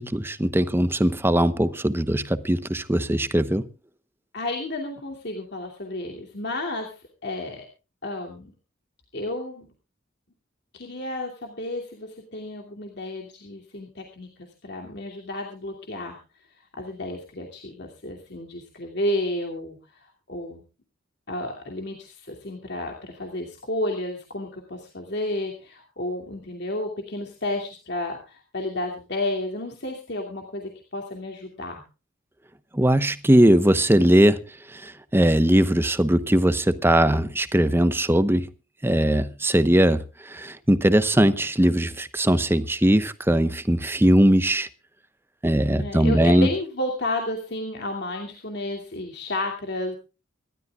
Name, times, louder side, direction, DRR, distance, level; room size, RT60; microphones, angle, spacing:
voice 1, 0.0-3.6 32.7-34.4 34.7-38.5 38.8-44.7 45.4-46.5, right 1 dB, 10° right, 0.9 m, -20 dB
voice 2, 4.3-7.6 8.0-8.5 9.1-9.7 10.7-16.2 16.8-20.6 21.3-31.8 45.7-49.9, left 1 dB, 55° left, 2.7 m, -32 dB
26.5 x 13.0 x 2.4 m
head